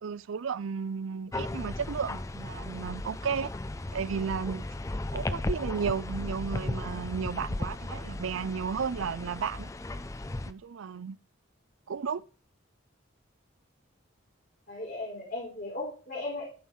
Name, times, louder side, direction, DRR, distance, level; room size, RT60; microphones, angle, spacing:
voice 1, 0.0-3.5 3.9-4.7 5.1-9.7 10.4-11.2 11.9-12.2, right 6 dB, 80° right, 0.4 m, -33 dB
sound 1, 1.3-10.5, left 2 dB, 15° left, 0.4 m, -36 dB
voice 2, 14.7-16.4, left 2 dB, 50° left, 3.9 m, -36 dB
13.0 x 4.6 x 5.5 m
head